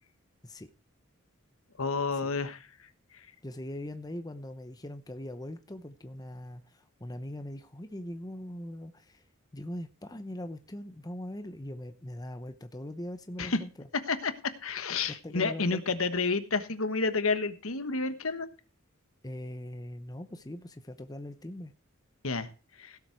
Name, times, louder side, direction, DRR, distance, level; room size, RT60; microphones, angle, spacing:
voice 1, 1.8-2.6 13.4-13.6 14.1-18.5 22.2-22.5 22.8-22.9, left 4 dB, 75° left, 11 dB, 1.3 m, -30 dB
voice 2, 3.4-9.2 9.5-13.9 15.1-15.8 19.2-21.7, left 1 dB, 20° left, 9 dB, 0.8 m, -41 dB
16.5 x 7.3 x 4.6 m, 0.34 s
head